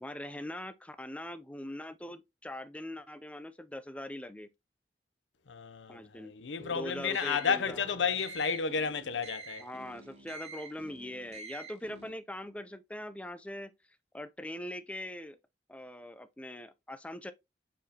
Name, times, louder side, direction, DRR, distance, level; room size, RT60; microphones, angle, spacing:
voice 1, 0.0-4.5 5.9-6.3 6.7-7.8 9.6-13.7 14.1-15.4 15.7-17.3, left 1 dB, 5° left, 0.5 m, -42 dB
voice 2, 5.5-9.7, left 6 dB, 90° left, 0.6 m, -32 dB
sound 1, 6.6-12.1, right 3 dB, 40° right, 1.5 m, -47 dB
7.1 x 4.7 x 2.8 m
head